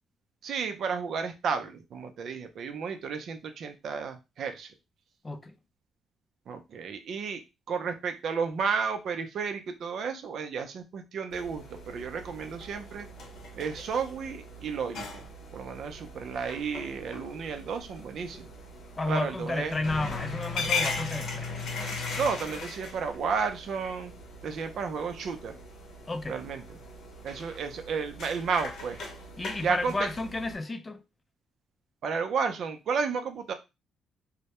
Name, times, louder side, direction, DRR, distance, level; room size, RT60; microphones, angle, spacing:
voice 1, 0.4-4.7 6.5-7.4 7.7-13.1 13.6-15.2 15.5-18.5 19.1-19.8 22.2-24.1 24.4-25.6 26.3-26.6 27.2-29.0 29.6-29.9 32.0-33.5, right 5 dB, 65° right, 0.5 m, -32 dB
voice 2, 5.2-5.6 19.0-21.5 26.1-26.4 29.4-31.0, left 2 dB, 25° left, 0.3 m, -32 dB
sound 1, 11.3-30.5, left 3 dB, 70° left, 0.7 m, -39 dB
2.2 x 2.1 x 2.8 m
cardioid pair, 90°, 0 cm